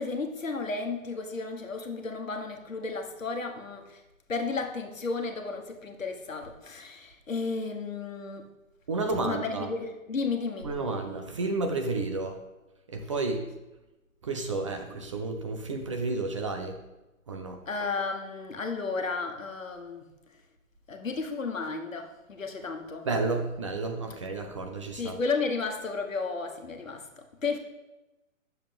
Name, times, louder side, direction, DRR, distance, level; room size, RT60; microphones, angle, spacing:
voice 1, 0.0-4.0 4.3-8.4 9.2-10.7 17.7-20.1 20.9-23.1 25.0-27.6, left 4 dB, 70° left, 4 dB, 1.4 m, -33 dB
voice 2, 8.9-9.7 10.6-12.4 12.9-13.4 14.2-16.8 17.3-17.6 23.1-25.2, right 3 dB, 25° right, 4 dB, 0.5 m, -31 dB
10.0 x 6.9 x 3.4 m, 1.0 s
figure-of-eight pair, 125°, 40 cm